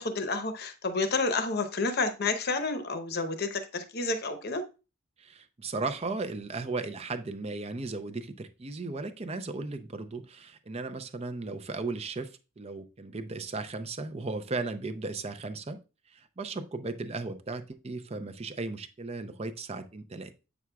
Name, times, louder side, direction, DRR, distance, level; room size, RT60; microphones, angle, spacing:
voice 1, 0.0-4.6, left 3 dB, 45° left, 8 dB, 0.8 m, -30 dB
voice 2, 5.2-15.8 16.1-20.3, right 3 dB, 25° right, 9 dB, 0.5 m, -36 dB
8.3 x 6.0 x 2.3 m, 0.31 s
head